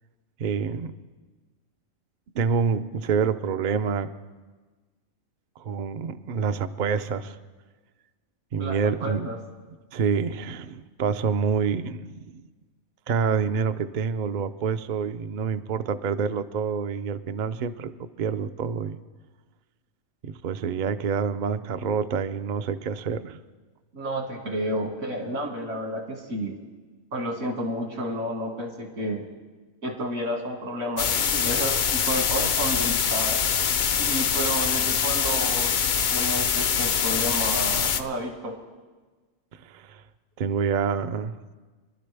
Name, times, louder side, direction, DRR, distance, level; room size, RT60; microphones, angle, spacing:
voice 1, 0.4-0.9 2.3-4.1 5.6-7.4 8.5-9.3 9.9-12.4 13.1-17.9 18.2-19.0 20.2-23.4 39.6-40.0 40.4-41.4, right 6 dB, 60° right, 10 dB, 0.4 m, -27 dB
voice 2, 8.6-9.4 23.9-26.6 27.1-29.3 29.8-33.4 34.0-35.7 36.1-38.5, right 1 dB, 80° right, 2 dB, 2.3 m, -31 dB
sound 1, 31.0-38.0, left 7 dB, 65° left, 0.5 m, -24 dB
25.0 x 11.5 x 3.4 m, 1.3 s
omnidirectional pair, 1.4 m